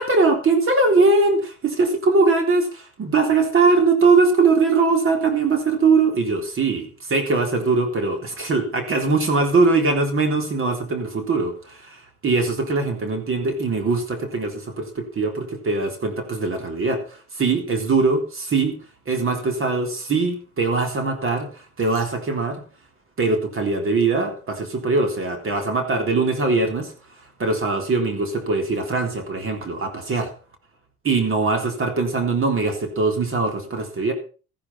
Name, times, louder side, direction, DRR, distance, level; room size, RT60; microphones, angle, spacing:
voice 1, 0.0-18.8 19.1-22.6 23.2-30.3 31.0-34.1, right 3 dB, 45° right, 5 dB, 3.7 m, -21 dB
14.5 x 10.5 x 5.7 m, 0.37 s
supercardioid pair, 80°, 30 cm